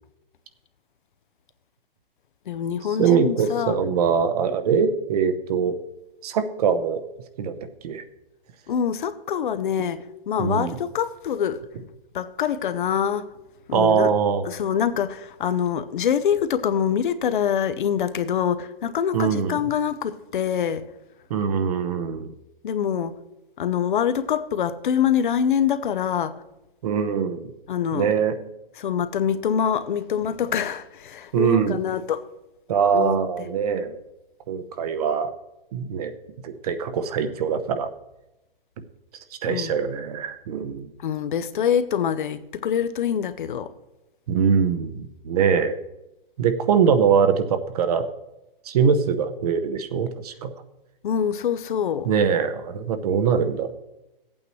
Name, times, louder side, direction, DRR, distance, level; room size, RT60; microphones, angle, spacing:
voice 1, 2.5-3.8 8.7-11.6 12.1-13.2 13.7-14.1 14.4-20.8 22.6-23.1 23.6-26.3 27.7-28.1 28.8-32.2 32.9-33.2 39.4-39.8 41.0-43.7 51.0-52.1, left 8 dB, 60° left, 0.8 m, -25 dB
voice 2, 3.0-5.8 6.2-7.0 7.4-8.0 10.4-10.8 13.7-14.4 19.1-19.6 21.3-22.3 26.8-27.5 27.9-28.4 31.3-31.8 32.7-34.0 34.5-35.3 35.7-36.1 36.4-37.9 39.4-40.9 44.3-45.8 46.4-48.1 48.6-50.5 52.0-53.7, right 7 dB, 40° right, 0.8 m, -22 dB
14.5 x 8.6 x 3.1 m
hypercardioid pair, 150°, 29 cm